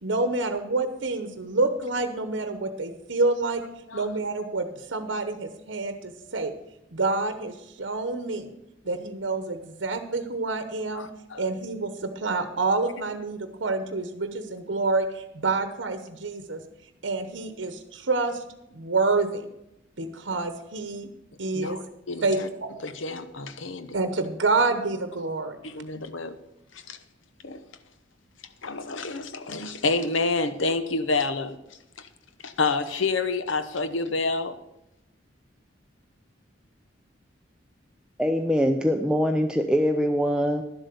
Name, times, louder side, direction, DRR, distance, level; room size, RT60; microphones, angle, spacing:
voice 1, 0.0-3.6 3.9-6.5 6.9-8.5 8.8-11.1 11.4-16.6 17.0-18.4 18.7-19.5 20.0-21.1 21.4-21.8 22.2-22.7 23.9-25.6, right 3 dB, 65° right, 0.9 m, -28 dB
voice 2, 10.9-11.4 21.5-22.5 22.8-24.0 25.6-26.3 26.9-27.0 27.4-27.6 28.6-31.6 32.0-32.1 32.4-34.5, left 3 dB, 75° left, 0.9 m, -28 dB
voice 3, 38.2-40.6, equal, 5° right, 0.5 m, -23 dB
11.5 x 7.7 x 6.8 m
head